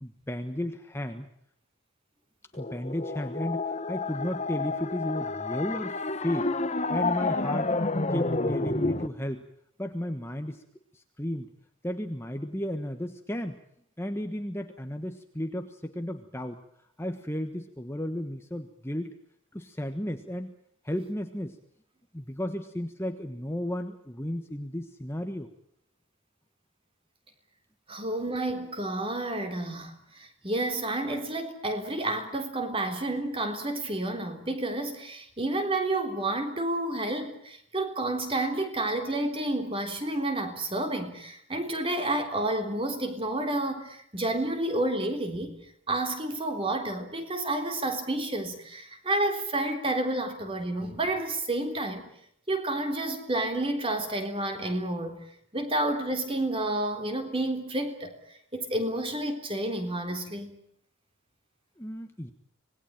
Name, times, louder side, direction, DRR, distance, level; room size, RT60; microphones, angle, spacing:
voice 1, 0.0-1.3 2.6-6.5 6.9-7.7 8.1-9.4 9.8-10.6 10.9-11.5 11.8-13.6 14.0-16.6 17.0-19.1 19.5-20.6 20.8-21.6 22.1-25.5 61.8-62.3, equal, 10° left, 6 dB, 1.3 m, -33 dB
sound 1, 2.5-9.1, left 3 dB, 30° left, 1.1 m, -30 dB
voice 2, 27.9-45.6 45.9-52.1 52.5-55.3 55.5-58.1 58.5-60.6, right 1 dB, 25° right, 6 dB, 3.7 m, -30 dB
26.5 x 19.5 x 9.0 m, 0.70 s
head